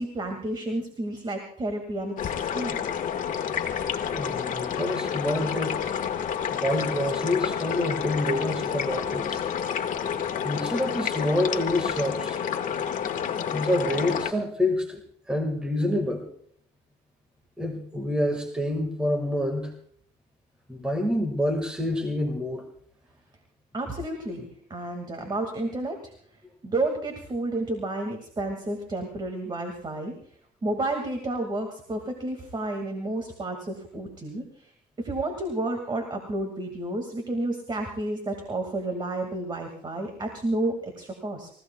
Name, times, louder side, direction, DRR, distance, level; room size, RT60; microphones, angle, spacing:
voice 1, 0.0-2.8 23.7-26.1 26.6-30.1 30.6-34.7 35.0-41.5, right 2 dB, 25° right, 4 dB, 2.1 m, -31 dB
sound 1, 2.2-14.3, left 8 dB, 50° left, 1.5 m, -29 dB
voice 2, 4.1-5.9 6.5-9.4 10.4-12.4 13.5-15.0 15.3-16.2 17.6-19.7 20.7-22.7, left 1 dB, 5° right, 3 dB, 1.8 m, -27 dB
29.5 x 15.5 x 2.3 m, 0.64 s
cardioid pair, 110°, 17 cm